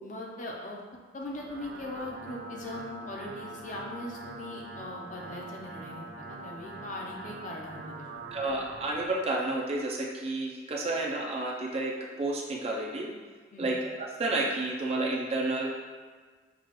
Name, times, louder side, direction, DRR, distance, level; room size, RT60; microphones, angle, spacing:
voice 1, 0.0-0.8 1.1-8.3 13.5-13.7, left 1 dB, 45° left, -1 dB, 0.6 m, -40 dB
sound 1, 1.2-9.1, right 2 dB, 90° right, 0.4 m, -44 dB
voice 2, 8.3-13.1 13.6-15.7, right 2 dB, 35° right, -2 dB, 0.5 m, -31 dB
6.0 x 2.4 x 3.0 m, 1.4 s
head